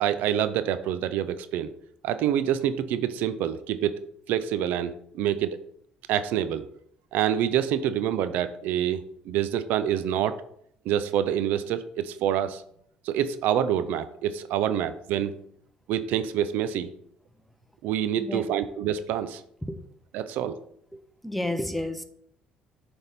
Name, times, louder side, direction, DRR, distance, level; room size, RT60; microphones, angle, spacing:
voice 1, 0.0-1.7 2.0-4.0 4.3-5.6 6.1-6.7 7.1-10.4 10.9-12.6 13.1-15.3 15.9-16.9 17.8-19.4 20.1-20.5, right 10 dB, 75° right, 13 dB, 0.4 m, -26 dB
voice 2, 18.1-18.4 19.7-19.8 20.9-22.0, left 1 dB, 5° left, 9 dB, 0.8 m, -31 dB
6.9 x 3.5 x 4.1 m, 0.69 s
supercardioid pair, 70°, 3 cm